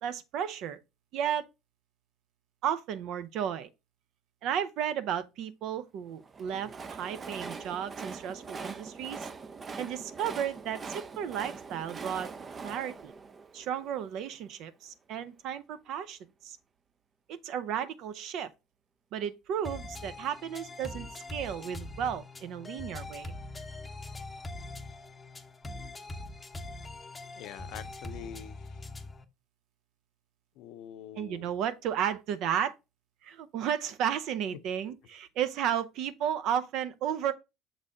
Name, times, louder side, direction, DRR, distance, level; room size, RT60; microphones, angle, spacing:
voice 1, 0.0-0.8 1.1-1.4 2.6-3.7 4.4-9.3 9.8-12.3 12.6-13.1 13.5-16.6 17.3-18.5 19.1-23.3 31.2-32.7 33.2-37.3, right 9 dB, 65° right, 0.7 m, -33 dB
Train, 6.2-14.3, right 4 dB, 30° right, 0.5 m, -42 dB
sound 1, 19.6-29.2, left 2 dB, 15° left, 0.7 m, -42 dB
voice 2, 27.4-28.7 30.6-31.5, left 10 dB, 65° left, 0.5 m, -45 dB
6.6 x 4.1 x 3.6 m
supercardioid pair, 110°, 0 cm